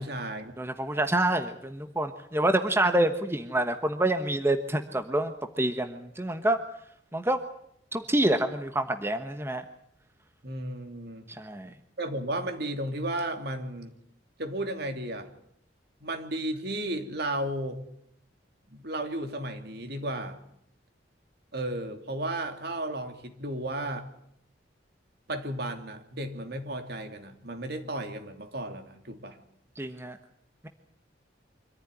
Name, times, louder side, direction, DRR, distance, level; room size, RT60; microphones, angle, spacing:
voice 1, 0.0-0.5 10.4-11.2 12.0-13.9 14.4-15.3 16.0-17.8 18.7-20.4 21.5-24.1 25.3-29.4, right 1 dB, 60° right, 6 dB, 3.0 m, -34 dB
voice 2, 0.6-6.6 7.1-7.4 7.9-9.6 11.3-11.7 29.8-30.2, right 1 dB, 15° right, 7 dB, 1.1 m, -27 dB
25.0 x 14.5 x 9.9 m, 0.72 s
head